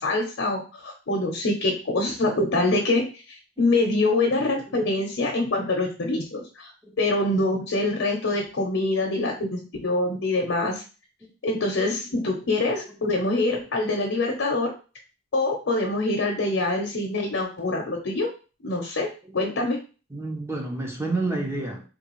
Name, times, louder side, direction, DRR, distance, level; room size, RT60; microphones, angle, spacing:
voice 1, 0.0-6.7 7.0-10.8 11.4-14.7 15.3-18.3 18.6-19.1 19.3-19.8, left 2 dB, 75° left, 1 dB, 0.7 m, -25 dB
voice 2, 20.1-21.8, right 2 dB, 15° right, 0 dB, 0.6 m, -29 dB
3.7 x 2.3 x 3.0 m, 0.34 s
head